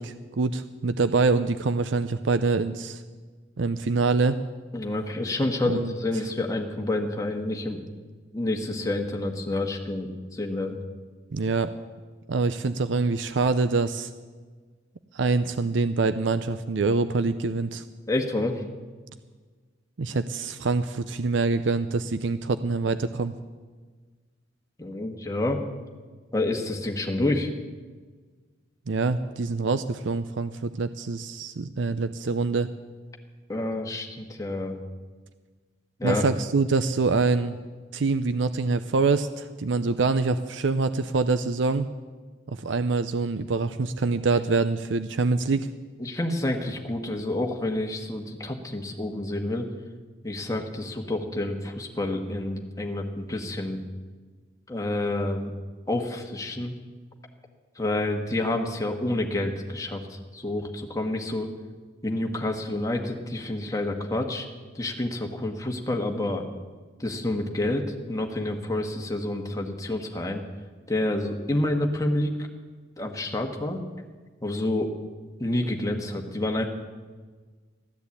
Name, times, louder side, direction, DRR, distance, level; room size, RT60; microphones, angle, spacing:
voice 1, 0.0-3.0 3.6-4.4 5.7-5.9 11.3-11.7 12.3-14.1 15.1-17.8 20.0-23.3 28.9-32.7 36.0-37.6 37.9-41.9 42.5-45.7, right 3 dB, 70° right, 11 dB, 0.5 m, -25 dB
voice 2, 4.7-7.8 8.3-10.8 18.1-18.6 24.8-25.6 26.3-27.5 33.5-34.8 36.0-36.2 46.0-49.7 50.2-53.8 54.7-55.5 55.9-56.8 57.7-61.5 62.0-64.5 64.7-66.4 67.0-70.4 70.9-72.4 73.0-73.8 74.4-74.9 75.4-76.6, left 1 dB, 15° left, 2 dB, 1.4 m, -28 dB
14.5 x 10.5 x 8.4 m, 1.4 s
head